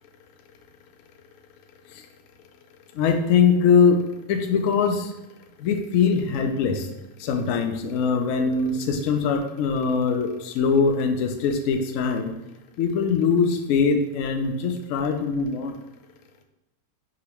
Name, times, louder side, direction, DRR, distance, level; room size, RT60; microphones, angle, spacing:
voice 1, 3.0-4.0 4.3-5.1 5.6-6.9 7.2-12.3 12.8-15.7, left 5 dB, 90° left, 5 dB, 0.7 m, -22 dB
4.9 x 2.9 x 3.0 m, 1.0 s
omnidirectional pair, 1.9 m